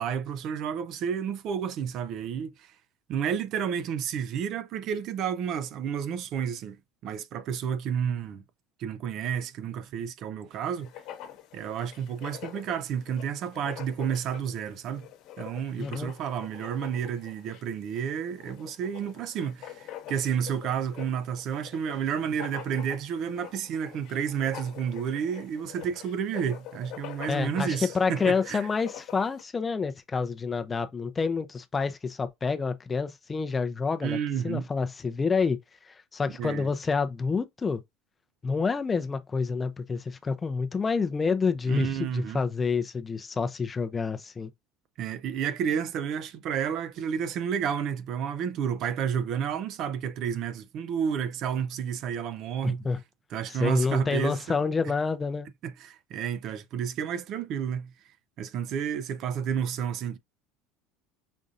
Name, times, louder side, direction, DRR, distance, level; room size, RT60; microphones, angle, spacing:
voice 1, 0.0-2.7 3.1-6.8 7.0-8.4 8.8-10.9 11.5-15.1 15.4-28.6 34.0-34.7 36.4-36.7 41.7-42.4 45.0-52.8 53.3-54.6 55.6-57.9 58.4-60.2, right 8 dB, 50° right, 0.4 m, -31 dB
Writing, 10.7-29.4, left 11 dB, 55° left, 1.0 m, -45 dB
voice 2, 15.8-16.1 27.3-34.2 34.4-35.6 35.9-37.8 38.4-44.5 52.6-53.0 53.5-55.5, left 5 dB, 20° left, 0.5 m, -28 dB
5.2 x 2.6 x 2.4 m
supercardioid pair, 125°, 0 cm